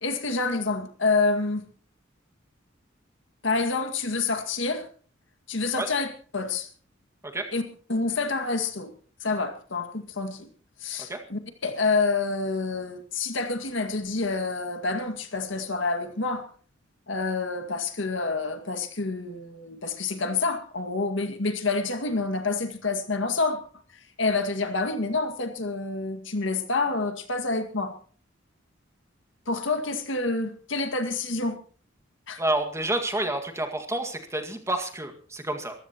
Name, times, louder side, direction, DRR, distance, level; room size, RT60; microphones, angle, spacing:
voice 1, 0.0-1.7 3.4-4.9 5.5-6.7 7.5-7.6 7.9-8.9 9.2-10.5 10.8-16.5 17.1-23.6 24.2-27.9 29.5-31.6 32.3-32.4, left 3 dB, 70° left, 7 dB, 2.1 m, -28 dB
voice 2, 32.4-35.7, right 1 dB, 15° right, 4 dB, 1.9 m, -29 dB
25.0 x 15.0 x 3.0 m, 0.43 s
head